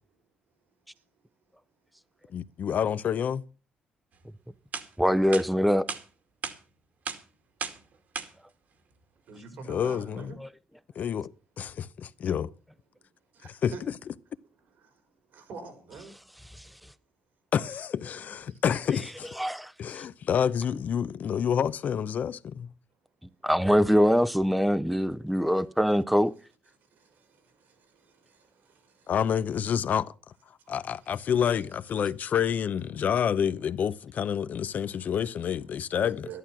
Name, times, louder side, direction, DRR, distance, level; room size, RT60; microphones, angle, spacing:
voice 1, 2.3-3.4 9.7-10.3 11.0-12.5 13.5-13.7 17.5-19.3 19.8-22.7 29.1-30.1 30.7-36.3, left 8 dB, 60° left, 0.7 m, -28 dB
sound 1, 4.2-4.3 4.7-4.9 5.3-5.4 5.9-6.0 6.4-6.6 7.0-7.2 7.6-7.8 8.1-8.3, right 6 dB, 60° right, 2.3 m, -34 dB
voice 2, 5.0-5.9 10.4-10.5 16.5-16.7 19.4-19.7 23.4-26.3, equal, ahead, 0.7 m, -23 dB
voice 3, 9.3-10.4 12.9-13.8 14.6-14.9 15.3-16.1 18.5-18.6 25.4-25.6 26.8-29.1 30.6-30.7 31.0-31.5 34.4-35.2 35.7-36.4, right 5 dB, 80° right, 4.7 m, -48 dB
13.0 x 11.5 x 6.0 m
cardioid pair, 85°, 3 cm